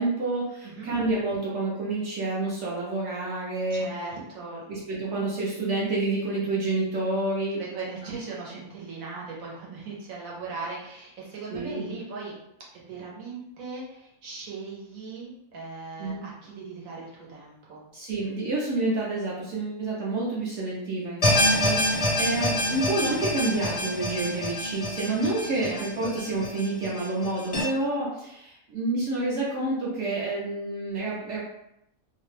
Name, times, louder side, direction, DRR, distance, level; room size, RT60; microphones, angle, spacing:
voice 1, 0.0-3.9 4.7-7.6 11.5-12.0 16.0-16.3 17.9-31.4, right 2 dB, 65° right, -5 dB, 0.9 m, -29 dB
voice 2, 0.6-0.9 3.7-4.6 7.5-12.4 12.7-17.8 25.4-26.1, right 4 dB, 80° right, -4 dB, 1.3 m, -39 dB
sound 1, 21.2-27.6, left 1 dB, 45° left, 0.4 m, -26 dB
2.8 x 2.1 x 3.1 m, 0.80 s
omnidirectional pair, 1.4 m